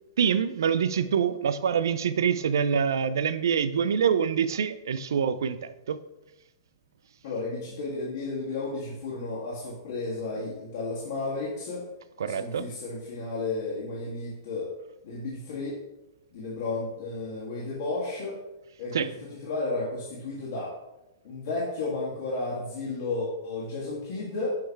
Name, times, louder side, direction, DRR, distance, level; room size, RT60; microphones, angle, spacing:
voice 1, 0.2-6.0 12.2-12.7 18.9-19.1, right 7 dB, 85° right, 13 dB, 0.4 m, -25 dB
voice 2, 7.2-11.8 12.2-14.7 15.0-15.8 16.3-18.4 18.8-20.7 21.2-24.5, left 3 dB, 55° left, -7 dB, 1.7 m, -33 dB
6.6 x 3.2 x 4.5 m, 0.95 s
hypercardioid pair, 155°, 2 cm